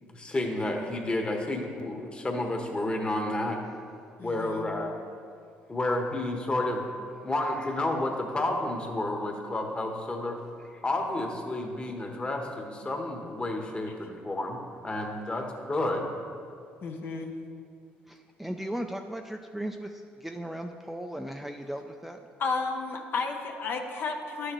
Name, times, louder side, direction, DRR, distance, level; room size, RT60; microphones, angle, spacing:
voice 1, 0.0-3.6 4.2-4.9 5.7-6.9 7.2-10.4 10.7-16.1, left 2 dB, 25° left, 2 dB, 1.2 m, -31 dB
voice 2, 4.2-4.8 16.8-17.3 22.4-24.5, left 4 dB, 55° left, 3 dB, 0.7 m, -32 dB
voice 3, 18.1-22.2, right 1 dB, 5° right, 4 dB, 0.4 m, -37 dB
11.0 x 6.4 x 3.1 m, 2.3 s
supercardioid pair, 75°, 4 cm